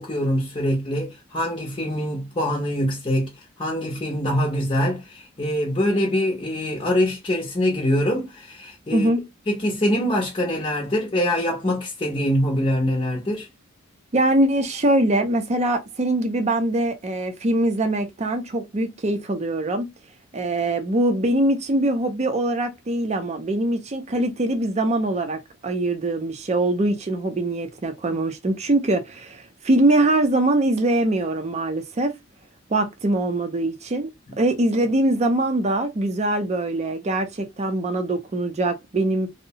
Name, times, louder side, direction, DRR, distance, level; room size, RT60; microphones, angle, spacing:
voice 1, 0.0-9.1 9.5-13.5 34.3-34.4, equal, 25° left, 0.6 m, -24 dB
voice 2, 8.9-9.3 14.1-19.9 20.3-32.2 32.7-39.3, right 1 dB, 35° right, 0.5 m, -23 dB
2.7 x 2.0 x 2.7 m
head